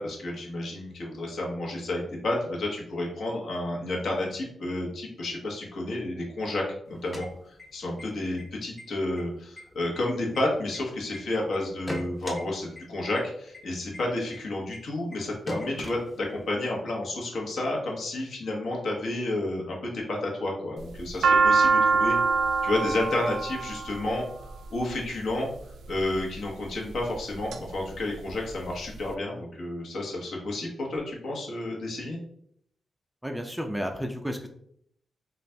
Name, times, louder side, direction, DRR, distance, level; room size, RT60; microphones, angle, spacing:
voice 1, 0.0-22.2 22.6-25.5 25.9-32.2, left 2 dB, 70° left, -1 dB, 1.1 m, -31 dB
sound 1, 6.9-8.0 8.4-8.5 8.8-9.2 9.6-11.2 11.5-12.4 12.8-12.9 13.1-13.2 13.5-13.6 13.9-14.0 14.3-14.4 14.7-14.8 15.1-15.2 15.5-16.5, left 1 dB, 15° left, 0.7 m, -38 dB
sound 2, 20.8-25.0 25.9-26.3 26.9-27.6 27.9-28.0 28.2-29.0, right 4 dB, 90° right, 0.3 m, -24 dB
voice 2, 33.2-34.5, equal, ahead, 4 dB, 0.3 m, -32 dB
4.0 x 2.4 x 3.3 m, 0.69 s
wide cardioid pair, 135°, 0 cm